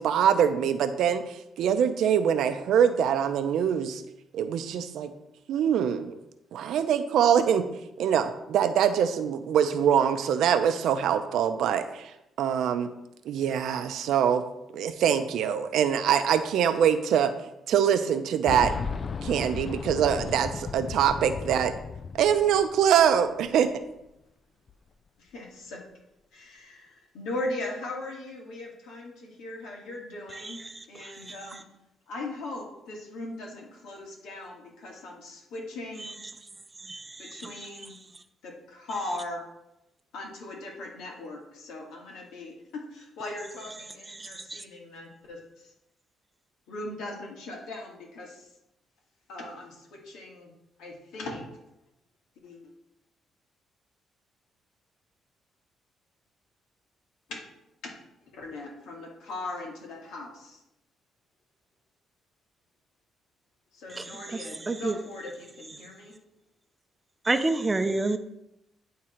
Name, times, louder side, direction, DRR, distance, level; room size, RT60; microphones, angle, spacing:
voice 1, 0.0-4.0 4.3-5.1 5.5-6.2 6.5-7.6 8.0-12.1 12.4-12.9 13.3-14.4 14.7-17.3 17.7-18.7 19.2-21.7 22.1-23.7, right 8 dB, 80° right, 9 dB, 0.6 m, -24 dB
Boom, 18.5-23.2 23.5-23.6 24.7-24.8, left 5 dB, 45° left, 0.3 m, -35 dB
voice 2, 25.2-25.8 26.3-30.6 30.9-31.6 32.1-36.2 37.2-37.9 38.4-39.4 40.1-45.7 46.7-48.5 49.3-50.5 50.8-51.4 52.4-52.7 57.3-57.4 58.2-60.6 63.7-66.1, left 2 dB, 85° left, -1 dB, 2.1 m, -39 dB
voice 3, 30.3-31.4 36.0-36.1 36.8-37.4 44.1-44.6 63.9-65.0 67.2-68.2, right 2 dB, 20° right, 9 dB, 0.6 m, -30 dB
10.0 x 3.7 x 4.4 m, 0.86 s
cardioid pair, 90°, 0 cm